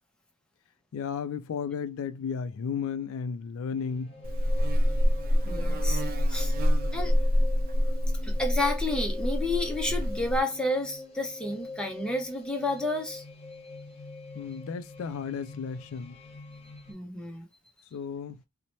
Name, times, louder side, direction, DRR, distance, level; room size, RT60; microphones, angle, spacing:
voice 1, 0.9-4.1 14.3-16.2 17.9-18.4, left 6 dB, 60° left, 0.3 m, -34 dB
sound 1, 3.7-16.9, left 3 dB, 30° left, 1.0 m, -43 dB
Buzz, 4.2-10.4, equal, 40° right, 0.4 m, -26 dB
voice 2, 5.5-6.0 6.3-6.5 6.9-7.1 8.2-13.2 16.9-17.5, left 2 dB, 5° left, 0.6 m, -31 dB
2.7 x 2.1 x 3.0 m
head